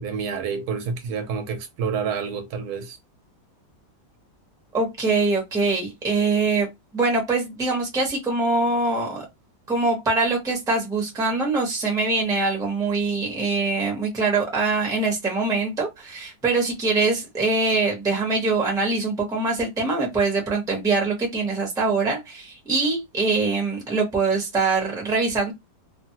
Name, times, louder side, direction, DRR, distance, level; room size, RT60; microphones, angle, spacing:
voice 1, 0.0-3.0, right 6 dB, 75° right, 1.0 m, -28 dB
voice 2, 4.7-6.7 6.9-9.2 9.7-25.5, right 3 dB, 5° right, 0.6 m, -23 dB
2.6 x 2.5 x 2.8 m
omnidirectional pair, 1.8 m